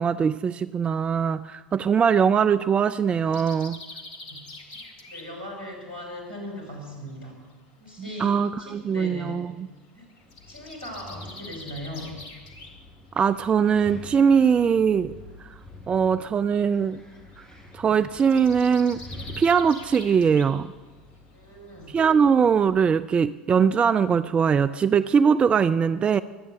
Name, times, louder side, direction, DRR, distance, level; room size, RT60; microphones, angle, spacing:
voice 1, 0.0-3.8 8.0-9.7 13.2-15.1 15.4-15.5 15.9-17.0 17.4-17.5 17.7-19.0 19.4-20.7 21.9-26.2, right 6 dB, 20° right, 13 dB, 0.4 m, -21 dB
sound 1, 3.3-7.6 7.9-14.1 14.4-22.3, left 2 dB, 55° left, 2.3 m, -46 dB
voice 2, 4.3-7.3 7.8-9.4 9.9-10.1 10.5-12.2 21.3-22.0, equal, 75° right, 0 dB, 5.1 m, -39 dB
Wind, 10.2-22.8, left 2 dB, 15° left, 6.3 m, -47 dB
23.0 x 8.7 x 6.8 m, 1.3 s
figure-of-eight pair, 75°, 5 cm